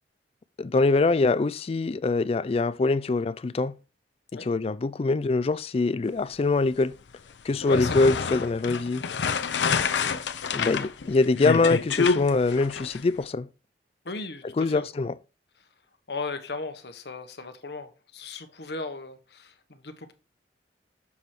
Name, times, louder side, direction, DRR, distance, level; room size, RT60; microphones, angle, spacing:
voice 1, 0.6-3.7 4.3-6.9 7.4-9.0 10.5-13.5 14.6-15.1, left 3 dB, 35° left, 0.3 m, -24 dB
sound 1, 7.5-13.0, left 5 dB, 90° left, 0.6 m, -27 dB
voice 2, 7.7-8.1 10.0-10.2 14.0-14.9 16.1-20.1, left 3 dB, 65° left, 1.1 m, -37 dB
7.1 x 4.7 x 4.4 m
head